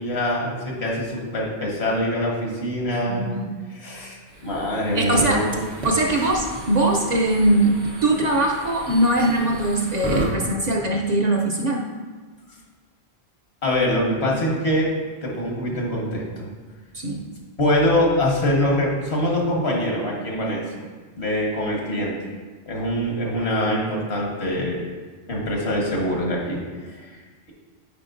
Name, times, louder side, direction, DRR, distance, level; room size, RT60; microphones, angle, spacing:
voice 1, 0.0-3.2 3.7-5.5 6.1-6.3 13.6-14.9 15.2-16.5 17.6-20.6 21.1-22.1 22.7-24.8 25.3-27.0, left 1 dB, 80° left, -2 dB, 1.6 m, -24 dB
voice 2, 2.9-3.5 4.9-5.4 5.8-11.8 16.9-17.2, right 1 dB, 45° right, 0 dB, 0.7 m, -21 dB
sound 1, 4.3-10.3, right 2 dB, 85° right, 1.4 m, -33 dB
9.2 x 5.0 x 2.6 m, 1.4 s
omnidirectional pair, 1.1 m